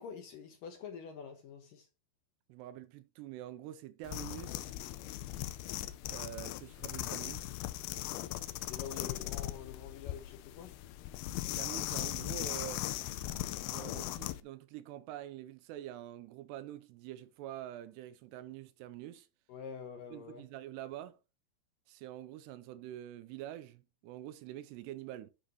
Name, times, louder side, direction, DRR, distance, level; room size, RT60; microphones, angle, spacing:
voice 1, 0.0-1.9 8.6-10.7 19.5-20.5, left 7 dB, 70° left, 2.2 m, -46 dB
voice 2, 2.5-4.7 6.1-7.6 11.5-12.9 13.6-19.3 20.1-21.2 21.9-25.3, right 13 dB, 80° right, 2.6 m, -46 dB
sound 1, 4.0-14.4, left 15 dB, 90° left, 2.1 m, -39 dB
10.0 x 6.7 x 3.0 m
omnidirectional pair, 5.1 m